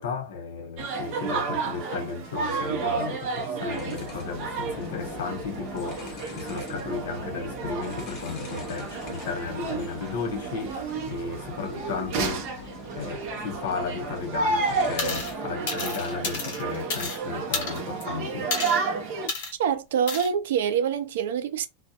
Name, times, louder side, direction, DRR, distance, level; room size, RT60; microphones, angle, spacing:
voice 1, 0.0-10.8 11.1-12.5 12.9-18.5, left 5 dB, 85° left, 0.9 m, -34 dB
sound 1, 0.8-19.3, right 4 dB, 35° right, 0.7 m, -32 dB
sound 2, 3.7-15.4, left 4 dB, 25° left, 0.6 m, -43 dB
sound 3, 15.0-15.3 15.7-17.2 17.5-18.0 18.5-18.8 19.3-19.5 20.1-20.3, left 4 dB, 55° left, 0.9 m, -31 dB
voice 2, 19.6-21.7, right 8 dB, 85° right, 0.4 m, -25 dB
2.3 x 2.2 x 2.8 m
supercardioid pair, 180°, 0 cm